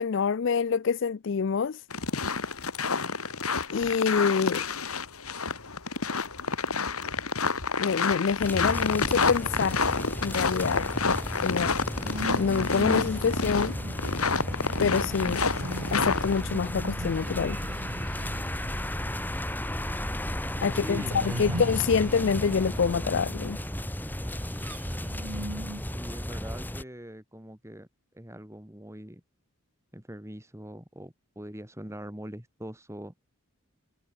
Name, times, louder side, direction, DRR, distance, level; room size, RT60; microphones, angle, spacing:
voice 1, 0.0-1.8 3.7-4.6 7.8-9.8 10.2-10.8 11.4-11.7 12.4-13.8 14.8-15.4 15.9-17.6 20.6-23.6, left 6 dB, 60° left, 0.4 m, -26 dB
sound 1, 1.9-16.4, left 4 dB, 90° left, 3.4 m, -29 dB
sound 2, 8.4-26.8, equal, 10° left, 4.0 m, -34 dB
sound 3, 11.9-25.8, right 1 dB, 80° right, 4.8 m, -40 dB
voice 2, 20.7-21.6 25.8-27.9 28.1-29.2 29.9-33.1, equal, 15° right, 2.4 m, -42 dB
head